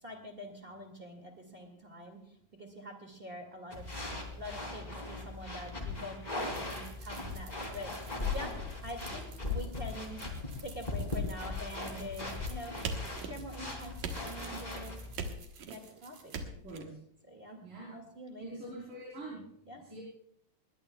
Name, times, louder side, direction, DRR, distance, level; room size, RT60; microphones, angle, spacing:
voice 1, 0.0-3.9 4.4-8.5 8.8-10.2 10.6-12.8 13.2-15.0 15.7-16.3 17.3-17.6 17.9-18.4 19.7-19.8, equal, 20° right, 3 dB, 1.7 m, -45 dB
sound 1, 3.7-15.1, left 3 dB, 15° left, 2.5 m, -39 dB
sound 2, 6.3-16.4, right 6 dB, 70° right, 3.5 m, -56 dB
sound 3, 12.8-13.6 14.0-14.6 15.2-15.8 16.3-16.8, right 4 dB, 90° right, 2.9 m, -39 dB
voice 2, 16.6-17.0 17.6-18.0 18.4-19.4 19.8-20.0, right 1 dB, 40° right, -4 dB, 4.8 m, -44 dB
20.5 x 20.0 x 2.3 m, 0.68 s
omnidirectional pair, 3.6 m